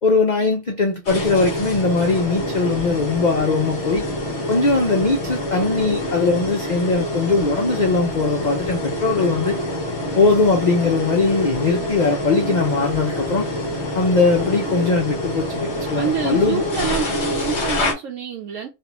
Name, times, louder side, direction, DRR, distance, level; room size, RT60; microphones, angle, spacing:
voice 1, 0.0-4.0 4.5-9.5 10.1-13.5 13.9-16.6, left 3 dB, 75° left, 0.4 m, -20 dB
sound 1, 1.1-17.9, left 1 dB, 50° left, 1.2 m, -26 dB
voice 2, 16.0-18.7, right 7 dB, 70° right, 0.9 m, -27 dB
3.4 x 2.4 x 2.9 m
omnidirectional pair, 1.5 m